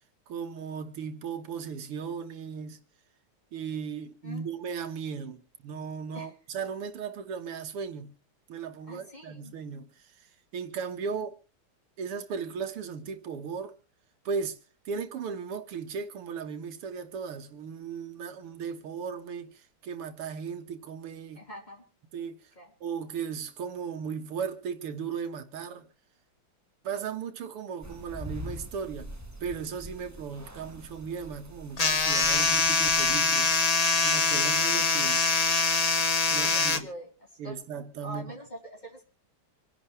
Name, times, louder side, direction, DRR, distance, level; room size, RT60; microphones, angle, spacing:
voice 1, 0.3-2.8 3.5-8.1 8.5-11.4 12.0-13.8 14.3-14.6 14.9-21.4 22.1-22.5 22.8-25.9 26.8-29.1 29.4-33.6 34.0-35.2 36.3-36.9 37.4-38.3, right 6 dB, 80° right, 2.3 m, -36 dB
voice 2, 8.9-9.6 21.3-21.8 22.6-22.7 36.4-37.1 37.4-37.6 38.0-39.0, right 1 dB, 20° left, 4.0 m, -43 dB
sound 1, 27.8-33.1, equal, 10° right, 0.9 m, -44 dB
sound 2, 31.8-36.8, left 4 dB, 40° left, 0.5 m, -24 dB
26.5 x 11.0 x 3.2 m
omnidirectional pair, 2.4 m